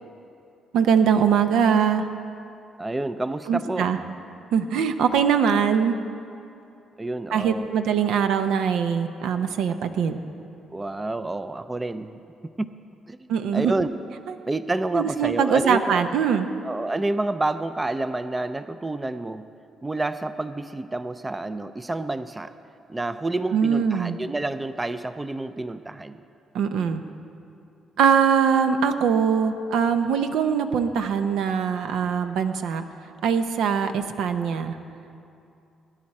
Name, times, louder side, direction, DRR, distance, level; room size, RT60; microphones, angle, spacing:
voice 1, 0.7-2.1 3.5-4.0 4.5-6.0 7.3-10.2 13.3-13.7 14.9-16.5 23.5-24.2 26.5-27.0 28.0-32.9 33.2-34.8, right 7 dB, 80° right, 8 dB, 0.7 m, -22 dB
voice 2, 2.8-3.9 7.0-7.7 10.7-12.2 12.6-12.7 13.1-13.2 13.5-13.9 14.5-16.1 16.6-19.5 19.8-22.5 22.9-26.2, right 2 dB, 20° right, 12 dB, 0.4 m, -29 dB
18.0 x 10.0 x 4.2 m, 2.6 s
cardioid pair, 90°, 0 cm